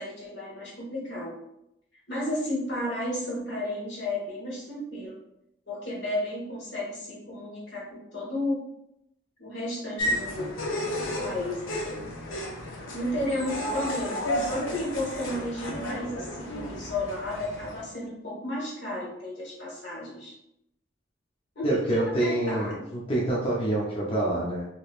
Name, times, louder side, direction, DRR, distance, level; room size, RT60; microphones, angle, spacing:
voice 1, 0.0-1.3 2.1-5.2 5.7-8.6 9.4-10.6 11.0-12.1 12.9-20.3 21.5-22.8, left 1 dB, 65° left, -4 dB, 1.3 m, -33 dB
sound 1, 10.0-17.8, equal, 90° left, 0.7 m, -33 dB
voice 2, 21.6-24.7, right 1 dB, 30° left, -6 dB, 0.5 m, -27 dB
3.2 x 2.9 x 2.4 m, 0.80 s
head